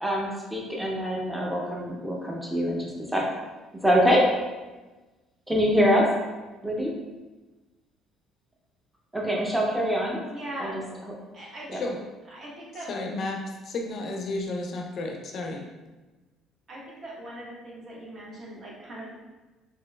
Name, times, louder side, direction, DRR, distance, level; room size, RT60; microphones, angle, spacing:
voice 1, 0.0-3.2 3.8-4.2 5.5-6.1 6.6-6.9 9.1-10.3 10.6-10.7 11.7-11.8, equal, 5° right, -2 dB, 0.6 m, -24 dB
voice 2, 10.3-10.8 11.3-11.8 12.3-12.9 16.7-19.2, right 1 dB, 40° right, -4 dB, 1.0 m, -40 dB
voice 3, 12.9-15.7, left 2 dB, 50° left, 2 dB, 0.4 m, -32 dB
3.4 x 2.9 x 2.2 m, 1.2 s
cardioid pair, 120°, 0 cm